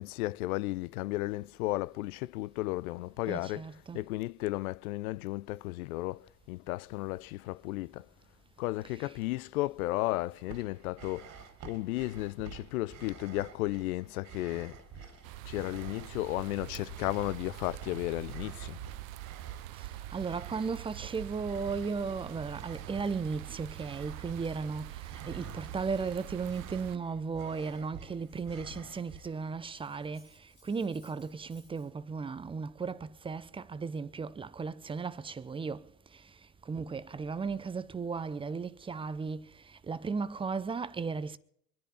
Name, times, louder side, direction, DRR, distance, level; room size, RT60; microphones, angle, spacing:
voice 1, 0.0-8.1 8.6-11.3 11.6-14.8 15.5-18.8, left 18 dB, 65° left, 0.6 m, -34 dB
voice 2, 3.3-4.0 8.8-9.2 19.7-36.3 36.7-41.4, right 5 dB, 10° right, 0.6 m, -36 dB
sound 1, 10.3-29.6, right 6 dB, 35° right, 2.9 m, -50 dB
sound 2, 15.2-27.0, right 16 dB, 55° right, 0.8 m, -44 dB
Cutlery silverware, 24.5-26.9 27.2-29.3 29.7-31.9, left 1 dB, 85° left, 5.9 m, -67 dB
24.5 x 10.0 x 4.9 m
hypercardioid pair, 90°, 49 cm